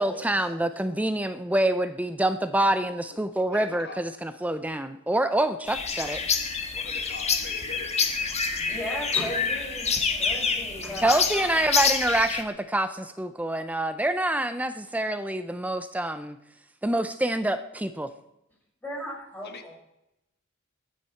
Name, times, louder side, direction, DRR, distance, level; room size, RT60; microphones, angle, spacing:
voice 1, 0.0-6.2 11.0-16.4 16.8-18.1, right 1 dB, 5° right, 10 dB, 0.5 m, -26 dB
voice 2, 3.5-4.0 6.0-6.2 6.7-7.9 19.4-19.7, left 4 dB, 50° left, 6 dB, 1.9 m, -42 dB
sound 1, 5.7-12.4, left 5 dB, 30° left, 1.4 m, -27 dB
voice 3, 8.5-11.6 18.8-19.7, equal, 10° left, -4 dB, 6.1 m, -36 dB
21.5 x 9.2 x 4.5 m, 0.85 s
head